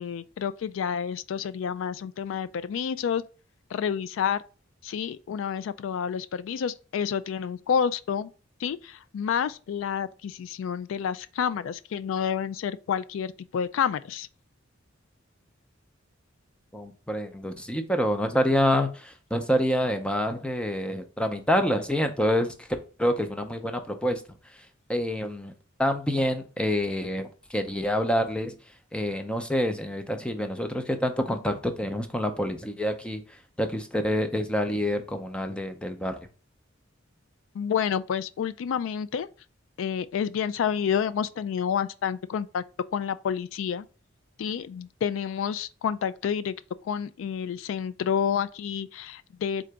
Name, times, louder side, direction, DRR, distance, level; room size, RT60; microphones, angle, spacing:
voice 1, 0.0-3.2 3.7-4.4 4.8-8.3 8.6-14.3 37.5-39.3 39.8-42.6 42.9-43.9 44.4-46.6 46.8-49.6, left 7 dB, 75° left, 0.3 m, -29 dB
voice 2, 16.7-22.5 23.0-24.2 24.9-25.5 25.8-28.5 28.9-33.2 33.6-36.2, equal, 5° left, 0.5 m, -27 dB
3.8 x 3.8 x 3.4 m
head